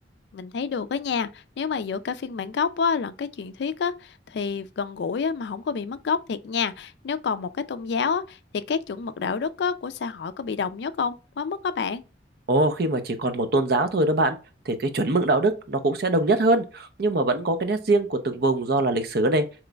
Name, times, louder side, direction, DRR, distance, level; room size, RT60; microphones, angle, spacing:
voice 1, 0.3-12.0, left 5 dB, 65° left, 0.3 m, -28 dB
voice 2, 12.5-14.4 14.7-19.4, right 2 dB, 55° right, 0.5 m, -23 dB
5.0 x 3.0 x 2.2 m
head